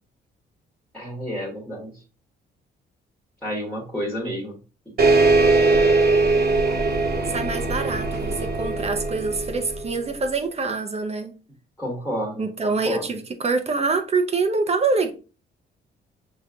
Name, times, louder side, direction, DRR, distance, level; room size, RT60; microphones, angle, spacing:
voice 1, 0.9-1.9 3.4-4.6 5.0-5.3 11.8-13.2, equal, 5° left, 1.6 m, -30 dB
sound 1, 5.0-10.1, right 3 dB, 50° right, 1.2 m, -20 dB
voice 2, 7.3-11.3 12.4-15.1, right 4 dB, 30° right, 0.8 m, -25 dB
5.8 x 3.1 x 2.5 m
cardioid pair, 90°, 20 cm